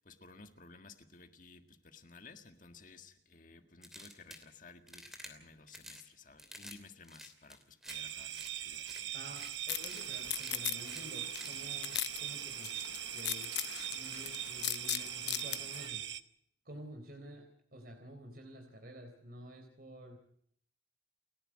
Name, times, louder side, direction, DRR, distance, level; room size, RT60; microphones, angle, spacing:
voice 1, 0.0-9.1, left 4 dB, 45° left, 7 dB, 1.8 m, -56 dB
sound 1, 3.8-4.5 4.9-5.3 5.7-6.0 6.4-6.8 7.0-8.0 8.3-8.5 8.9-9.0 9.4-9.5 9.9-10.0 10.3-10.5 10.9-11.0 11.4-11.5 11.9-12.0, equal, ahead, 3.0 m, -49 dB
sound 2, 7.9-16.2, right 11 dB, 80° right, 1.1 m, -41 dB
voice 2, 9.1-12.7 13.1-13.6 13.9-16.1 16.7-17.4 17.7-20.2, right 1 dB, 50° right, 4 dB, 3.9 m, -50 dB
sound 3, 9.7-15.9, left 13 dB, 65° left, 0.9 m, -40 dB
29.5 x 11.5 x 8.8 m, 0.66 s
head